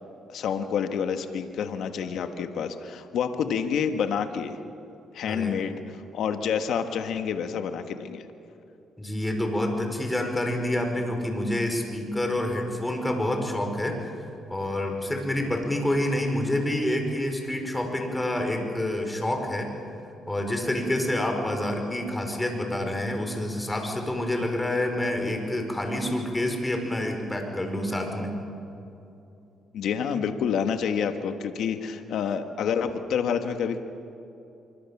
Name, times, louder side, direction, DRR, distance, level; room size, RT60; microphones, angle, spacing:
voice 1, 0.3-4.6 5.1-8.3 29.7-33.8, left 7 dB, 75° left, 7 dB, 1.4 m, -28 dB
voice 2, 5.3-5.6 9.0-19.7 20.3-28.4, left 1 dB, 10° left, 4 dB, 5.1 m, -28 dB
25.5 x 24.0 x 7.2 m, 2.8 s
cardioid pair, 90°, 0 cm